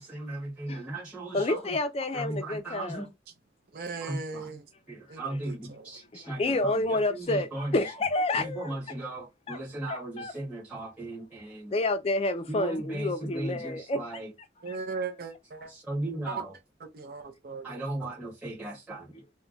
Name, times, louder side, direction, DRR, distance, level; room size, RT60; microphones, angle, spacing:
voice 1, 0.0-1.6 2.1-3.1 4.0-4.4 4.9-6.4 7.1-7.2 7.5-7.7 8.4-11.7 12.5-14.3 15.9-16.5 17.6-19.1, right 2 dB, 5° right, 1.1 m, -36 dB
voice 2, 1.3-3.1 5.3-5.4 6.1-9.0 9.5-9.6 9.9-10.3 10.8-10.9 11.7-14.8 19.1-19.2, left 2 dB, 35° left, 0.4 m, -30 dB
voice 3, 3.7-4.7 5.1-6.0 14.6-15.7 16.3-16.4 16.9-17.9, right 4 dB, 55° right, 0.5 m, -38 dB
2.3 x 2.1 x 3.8 m
head